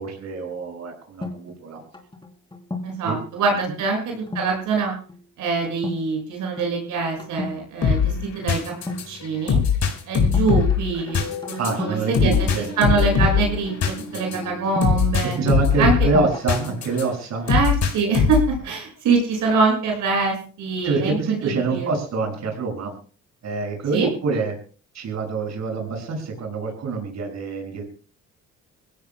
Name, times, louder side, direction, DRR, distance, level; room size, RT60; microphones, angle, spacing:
voice 1, 0.0-1.8 3.0-3.2 10.9-11.0 11.6-12.7 14.1-14.2 15.2-17.5 20.8-22.9 23.4-24.5 24.9-27.8, right 4 dB, 65° right, 2 dB, 6.1 m, -26 dB
sound 1, 1.2-3.1 4.3-4.6 4.9-5.2 5.6-6.0 6.3-6.7 7.2-7.6 8.8-9.5 10.3-12.0 12.3-15.0 15.4-16.9, left 2 dB, 15° left, 3.3 m, -34 dB
voice 2, 2.8-4.9 5.4-8.7 9.1-9.6 10.1-12.3 12.8-15.4 15.8-15.9 17.5-21.9 23.9-24.1, right 4 dB, 80° right, 0 dB, 6.3 m, -24 dB
sound 2, 7.8-17.0 17.5-18.6, left 6 dB, 65° left, 4.6 m, -22 dB
25.5 x 16.5 x 2.2 m, 0.39 s
cardioid pair, 90°, 30 cm